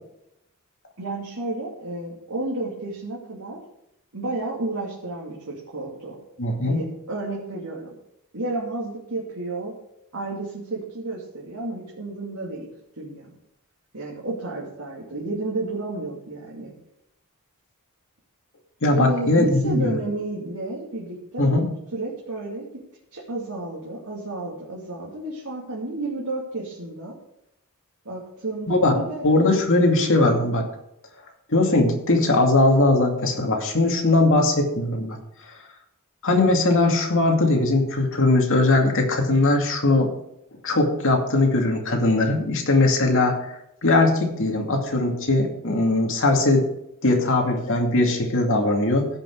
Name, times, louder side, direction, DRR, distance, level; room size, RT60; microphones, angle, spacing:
voice 1, 1.0-3.6 4.1-6.2 6.6-8.0 8.3-9.7 10.1-12.7 13.0-13.3 13.9-16.7 18.9-21.6 21.9-22.7 23.1-27.2 28.0-29.2, right 2 dB, 80° right, -4 dB, 2.7 m, -31 dB
voice 2, 6.4-6.8 18.8-20.0 21.4-21.7 28.7-29.0 29.2-30.7 31.5-35.2 36.2-40.1 40.6-43.5 43.8-46.6 47.0-49.1, left 2 dB, 65° left, 1 dB, 2.4 m, -20 dB
16.0 x 6.1 x 4.8 m, 0.80 s
head